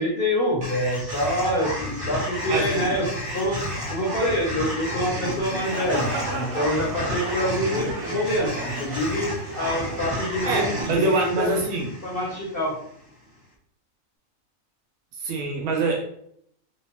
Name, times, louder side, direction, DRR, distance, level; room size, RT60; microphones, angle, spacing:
voice 1, 0.0-3.6 3.9-11.6 12.0-12.8, equal, 45° left, -3 dB, 1.0 m, -26 dB
sound 1, 0.6-12.9, left 1 dB, 20° right, 0.9 m, -32 dB
sound 2, 5.3-11.0, right 2 dB, 55° right, 0.6 m, -35 dB
voice 2, 10.5-11.9 15.2-16.0, right 3 dB, 90° right, 0 dB, 1.2 m, -24 dB
3.3 x 2.9 x 3.0 m, 0.68 s
omnidirectional pair, 1.5 m